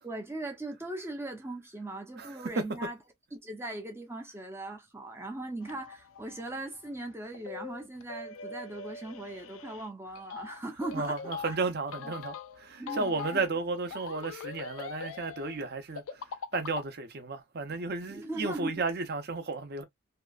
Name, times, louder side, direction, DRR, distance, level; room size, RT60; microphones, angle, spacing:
voice 1, 0.0-3.0 3.4-11.2 11.4-11.6 12.0-12.1 12.8-13.4 18.1-18.7, right 2 dB, 10° right, 0.5 m, -39 dB
voice 2, 2.2-2.5 10.9-16.2 16.5-19.8, right 3 dB, 50° right, 0.7 m, -33 dB
sound 1, 5.6-16.9, left 5 dB, 75° left, 0.4 m, -43 dB
2.9 x 2.3 x 2.3 m
head